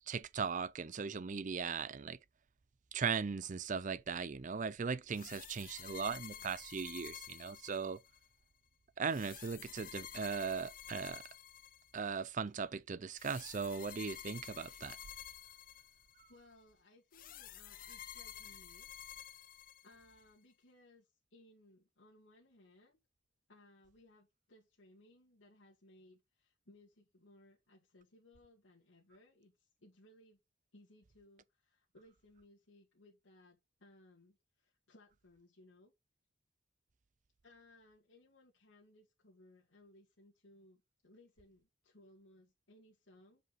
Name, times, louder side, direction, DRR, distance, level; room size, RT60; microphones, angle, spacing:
voice 1, 0.1-2.2 2.9-8.0 9.0-11.2 11.9-15.0, right 5 dB, 40° right, 0.5 m, -38 dB
sound 1, 5.1-8.3 9.1-12.2 13.1-16.3 17.1-20.2, left 10 dB, 45° left, 0.6 m, -51 dB
voice 2, 6.1-6.4 16.3-19.1 19.3-23.0 23.5-30.4 30.7-35.9 37.4-43.4, left 1 dB, 90° left, 2.2 m, -64 dB
7.4 x 5.3 x 4.1 m
head